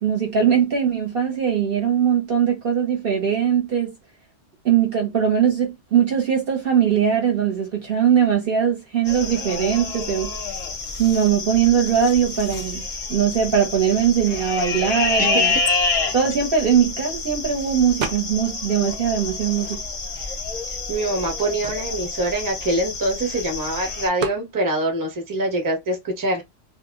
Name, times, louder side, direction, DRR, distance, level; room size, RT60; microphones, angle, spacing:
voice 1, 0.0-3.9 4.6-10.3 11.0-12.8 13.1-15.5 16.1-19.8, right 8 dB, 55° right, 0.8 m, -20 dB
sound 1, 9.0-24.1, left 4 dB, 45° left, 0.5 m, -28 dB
voice 2, 15.2-15.5 20.9-26.4, right 1 dB, 20° right, 0.6 m, -24 dB
sound 2, 18.0-18.6 18.9-20.2 20.8-20.9 21.1-23.4 24.2-24.5, right 5 dB, 75° right, 0.4 m, -33 dB
2.1 x 2.0 x 3.5 m
omnidirectional pair, 1.3 m